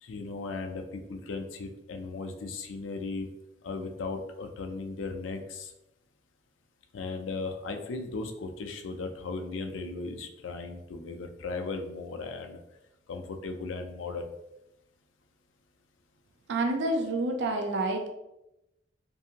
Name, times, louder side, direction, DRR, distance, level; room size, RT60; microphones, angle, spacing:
voice 1, 0.0-3.3 3.6-5.7 6.9-12.6 13.1-14.3, left 3 dB, 85° left, 5 dB, 0.4 m, -37 dB
voice 2, 16.5-18.1, right 2 dB, 65° right, 3 dB, 0.4 m, -28 dB
2.6 x 2.5 x 2.7 m, 0.90 s
head